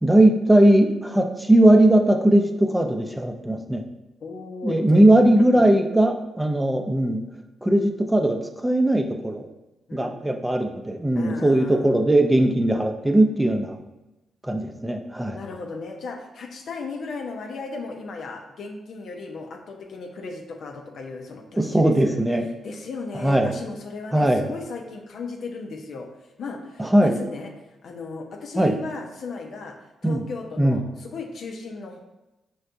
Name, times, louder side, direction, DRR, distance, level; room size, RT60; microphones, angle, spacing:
voice 1, 0.0-3.8 4.6-7.2 7.6-9.5 9.9-13.8 14.4-15.4 21.6-22.5 23.1-23.5 24.1-24.5 26.8-27.2 28.6-28.7 30.0-30.2 30.6-30.8, right 1 dB, 10° right, 5 dB, 0.5 m, -19 dB
voice 2, 4.2-5.0 5.3-5.7 6.6-6.9 9.9-10.2 11.2-11.9 15.3-26.1 26.4-27.5 27.8-29.8 30.0-32.0, left 4 dB, 65° left, 3 dB, 0.6 m, -36 dB
5.4 x 3.3 x 2.6 m, 0.98 s
supercardioid pair, 45°, 0 cm